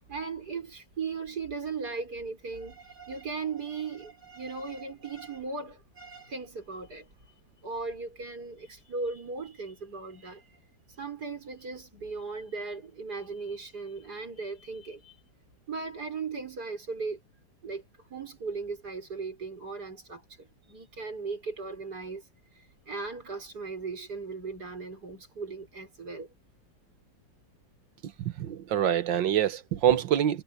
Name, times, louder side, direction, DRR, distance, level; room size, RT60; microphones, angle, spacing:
voice 1, 0.1-7.1 7.6-10.5 11.0-15.2 15.7-17.2 17.6-17.8 18.1-22.2 22.5-26.3, right 4 dB, 55° right, 6.4 m, -37 dB
voice 2, 28.0-30.4, right 10 dB, 75° right, 1.8 m, -26 dB
omnidirectional pair, 2.0 m